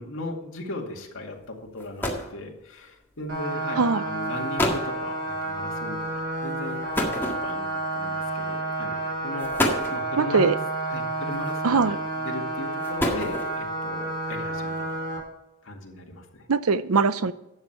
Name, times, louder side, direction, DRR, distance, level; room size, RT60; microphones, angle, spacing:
voice 1, 0.0-10.6 10.9-14.9 15.6-16.5, left 2 dB, 65° left, 2.2 m, -37 dB
sound 1, 1.4-1.5 1.8-2.4 3.4-3.6 4.2-4.3 4.6-4.9 6.9-7.8 8.7-8.9 9.4-10.1 11.3-11.8 12.6-13.7, left 1 dB, 10° left, 1.8 m, -28 dB
sound 2, 3.3-15.2, right 2 dB, 50° right, 4.5 m, -30 dB
voice 2, 10.2-10.6 11.6-12.0 16.5-17.3, right 4 dB, 80° right, 0.6 m, -21 dB
12.0 x 8.1 x 4.5 m
head